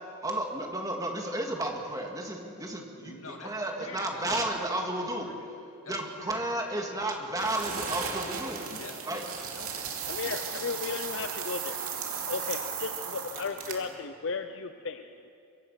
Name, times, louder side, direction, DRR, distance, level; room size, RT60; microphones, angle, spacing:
voice 1, 0.2-3.1 3.4-5.3 5.9-8.6 9.1-9.2, right 1 dB, 15° right, 1 dB, 2.1 m, -32 dB
voice 2, 3.0-4.2 4.5-4.9 5.2-5.5 5.8-6.4 8.7-10.2 10.4-11.0, left 3 dB, 70° left, 2 dB, 2.4 m, -47 dB
sound 1, 7.4-14.0, right 6 dB, 80° right, 2.6 m, -36 dB
voice 3, 10.1-15.3, left 4 dB, 55° left, 8 dB, 0.6 m, -35 dB
24.0 x 23.0 x 5.8 m, 2.6 s
head